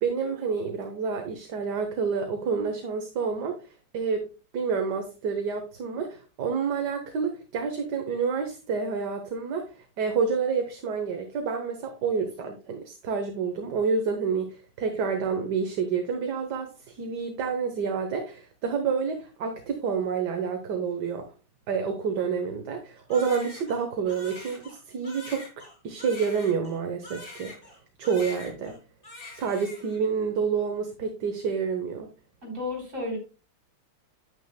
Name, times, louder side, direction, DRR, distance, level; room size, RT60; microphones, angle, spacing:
voice 1, 0.0-3.6 3.9-4.3 4.5-21.3 21.7-27.6 28.0-28.8 29.3-32.1, right 5 dB, 55° right, 4 dB, 1.5 m, -28 dB
Crying sobbing, 23.1-27.8 28.0-28.8 29.0-30.0, left 2 dB, 25° left, 2.2 m, -44 dB
voice 2, 32.4-33.2, left 2 dB, 35° right, 1 dB, 3.9 m, -32 dB
9.4 x 9.1 x 2.2 m, 0.32 s
omnidirectional pair, 2.4 m